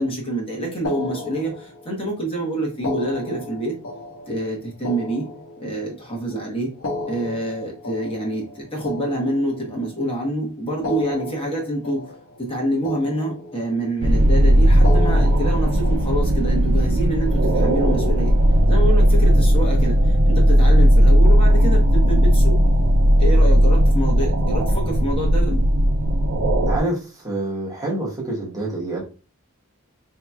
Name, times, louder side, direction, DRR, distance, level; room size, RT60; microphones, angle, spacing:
voice 1, 0.0-3.8 4.3-5.3 5.6-6.7 7.1-12.0 12.4-18.3 18.7-22.6 23.2-25.6, right 1 dB, 25° left, -2 dB, 1.0 m, -26 dB
sound 1, 0.8-2.1 2.7-6.0 6.7-10.0 10.7-12.6 12.8-13.9 14.7-16.5, left 2 dB, 70° left, 1.0 m, -34 dB
sound 2, 14.0-26.8, equal, 90° right, 0.6 m, -16 dB
voice 2, 26.7-29.0, right 2 dB, 15° right, -4 dB, 1.1 m, -27 dB
4.5 x 2.8 x 2.3 m, 0.34 s
head